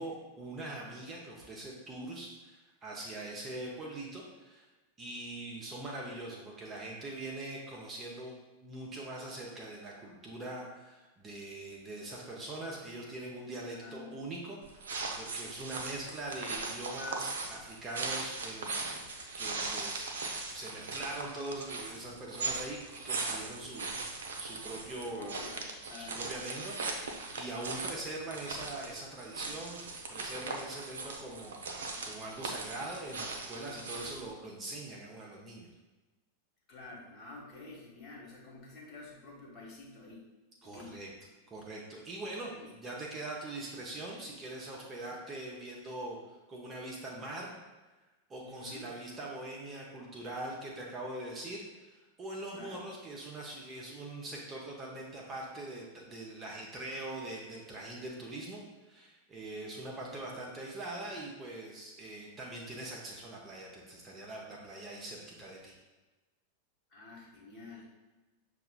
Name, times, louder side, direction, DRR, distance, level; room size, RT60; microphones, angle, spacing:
voice 1, 0.0-4.6 5.0-8.3 8.6-18.7 19.4-20.1 20.5-23.9 24.4-25.3 26.0-29.8 30.1-31.6 32.0-35.7 40.6-41.1 41.5-47.6 48.3-58.6 58.9-65.7, right 2 dB, 20° right, -3 dB, 0.7 m, -42 dB
voice 2, 13.7-14.2 25.0-26.2 36.7-40.3 40.6-41.0 42.1-42.2 42.5-42.7 48.4-48.9 52.5-52.9 60.0-60.3 66.9-67.8, left 3 dB, 30° left, -4 dB, 1.3 m, -49 dB
sound 1, 14.6-34.3, right 3 dB, 65° right, 0.5 m, -39 dB
6.5 x 2.4 x 2.2 m, 1.2 s
figure-of-eight pair, 90°, 0 cm